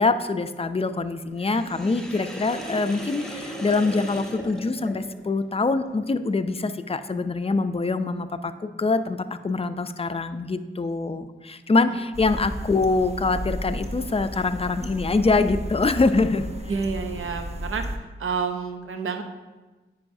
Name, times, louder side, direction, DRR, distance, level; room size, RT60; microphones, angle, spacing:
voice 1, 0.0-16.5, left 3 dB, 30° left, 10 dB, 0.4 m, -24 dB
Sink (filling or washing), 1.4-5.3, equal, 5° left, 0.9 m, -37 dB
sound 1, 12.1-18.0, equal, 30° right, 0.6 m, -34 dB
voice 2, 16.7-17.9 18.2-19.2, right 5 dB, 85° right, 6 dB, 0.6 m, -29 dB
9.3 x 4.8 x 2.6 m, 1.2 s
cardioid pair, 40°, 21 cm